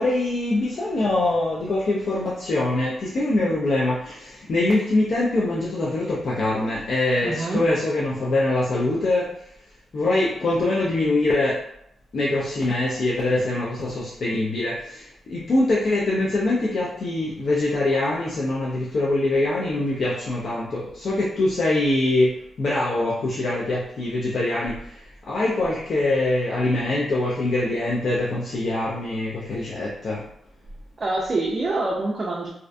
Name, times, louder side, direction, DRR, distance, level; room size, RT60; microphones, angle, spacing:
voice 1, 0.0-9.5 9.9-11.6 12.1-30.2, left 2 dB, 55° left, -4 dB, 0.4 m, -23 dB
voice 2, 7.2-7.6 31.0-32.5, right 2 dB, 40° right, -3 dB, 0.4 m, -25 dB
2.4 x 2.2 x 2.5 m, 0.75 s
cardioid pair, 110°, 0 cm